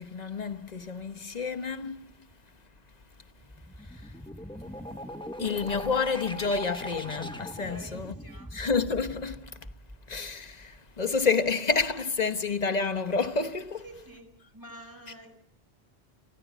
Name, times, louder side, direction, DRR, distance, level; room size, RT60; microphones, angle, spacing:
voice 1, 0.0-2.1 5.4-8.1 8.5-9.5 10.1-13.8, left 4 dB, 40° left, 1.2 m, -29 dB
sound 1, 3.4-11.0, equal, 5° left, 1.3 m, -41 dB
voice 2, 7.6-8.5 13.8-14.3 14.5-15.4, right 1 dB, 20° right, 4.5 m, -47 dB
29.0 x 14.5 x 8.2 m
omnidirectional pair, 1.1 m